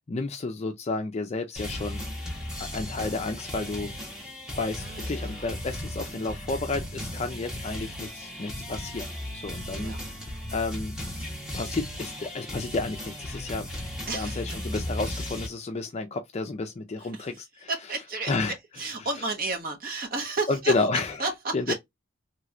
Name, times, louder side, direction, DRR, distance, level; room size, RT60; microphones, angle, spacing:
voice 1, 0.1-2.0 2.6-3.9 4.6-9.9 10.5-10.9 11.5-13.7 14.1-17.7 18.3-18.5 20.5-21.2 21.5-21.7, left 3 dB, 30° left, 0.4 m, -31 dB
sound 1, 1.6-15.5, left 1 dB, 5° right, 1.0 m, -36 dB
voice 2, 4.8-5.5 9.7-10.0 14.1-14.6 17.0-18.3 18.8-20.7 21.2-21.7, right 3 dB, 45° right, 1.1 m, -32 dB
3.3 x 3.0 x 2.4 m
head